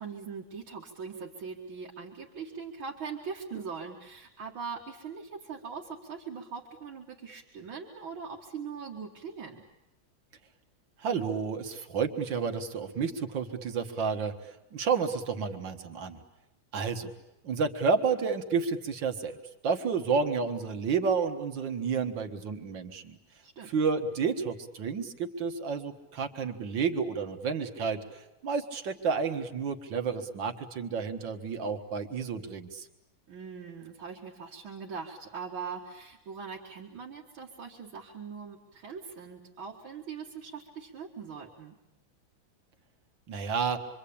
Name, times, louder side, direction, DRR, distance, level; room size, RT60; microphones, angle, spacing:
voice 1, 0.0-9.6 23.4-23.7 33.3-41.8, right 5 dB, 85° right, -2 dB, 2.8 m, -41 dB
voice 2, 11.0-16.2 16.7-17.1 17.4-19.4 19.6-23.2 23.6-32.9 43.3-43.8, right 5 dB, 70° right, 6 dB, 2.4 m, -30 dB
27.0 x 24.5 x 8.7 m, 0.93 s
omnidirectional pair, 2.2 m